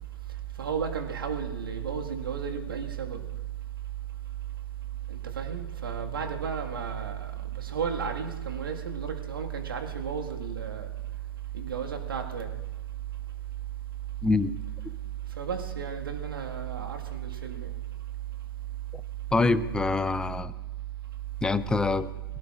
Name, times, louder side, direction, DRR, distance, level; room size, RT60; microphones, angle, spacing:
voice 1, 0.6-3.2 5.1-10.9 11.5-12.5 15.4-17.7, right 7 dB, 70° right, 3 dB, 1.8 m, -33 dB
voice 2, 14.2-14.6 18.9-19.0 19.3-20.5 21.4-22.1, left 3 dB, 5° left, 15 dB, 0.4 m, -25 dB
23.0 x 16.5 x 2.5 m, 1.1 s
figure-of-eight pair, 115°, 12 cm